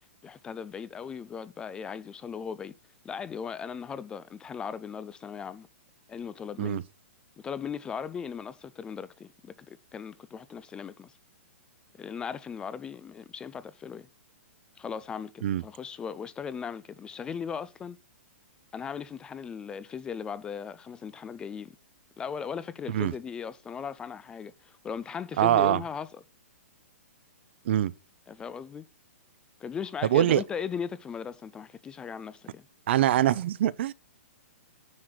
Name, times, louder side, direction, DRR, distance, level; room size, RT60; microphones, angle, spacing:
voice 1, 0.2-2.7 3.0-5.7 6.1-6.8 7.4-11.1 12.0-14.1 14.8-18.0 18.7-21.8 22.2-26.2 28.3-28.9 29.6-32.7, left 7 dB, 10° left, 0.4 m, -38 dB
voice 2, 25.4-25.8 27.7-27.9 30.1-30.4 32.9-33.9, right 12 dB, 55° right, 0.6 m, -23 dB
9.5 x 4.9 x 6.0 m
hypercardioid pair, 150°, 7 cm